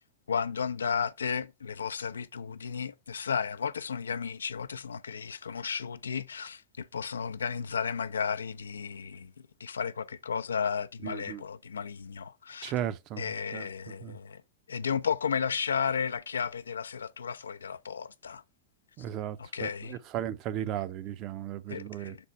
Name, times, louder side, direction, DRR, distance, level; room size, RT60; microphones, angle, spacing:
voice 1, 0.3-9.3 9.6-12.7 13.2-14.4 14.7-18.4 19.4-20.0 21.7-22.2, left 6 dB, 70° left, 0.5 m, -33 dB
voice 2, 11.0-11.4 12.6-14.2 19.0-22.2, right 11 dB, 40° right, 0.6 m, -36 dB
6.9 x 4.1 x 4.3 m
figure-of-eight pair, 90°, 0 cm